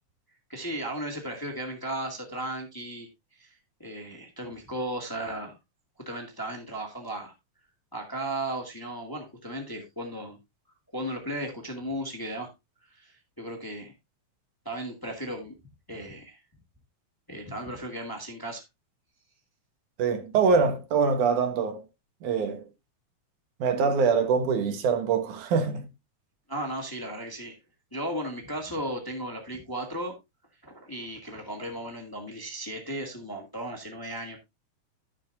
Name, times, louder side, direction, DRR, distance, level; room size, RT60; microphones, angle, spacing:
voice 1, 0.5-3.1 3.4-3.5 3.8-5.6 6.0-7.3 7.9-10.4 10.9-12.5 12.9-13.9 14.6-15.5 15.9-16.4 17.3-18.6 26.5-27.5 27.9-30.1 30.6-34.4, right 1 dB, 10° left, 1.5 m, -35 dB
voice 2, 20.0-21.8 22.2-22.6 23.6-25.9, right 5 dB, 90° right, 2.9 m, -24 dB
14.0 x 6.8 x 2.6 m
omnidirectional pair, 3.4 m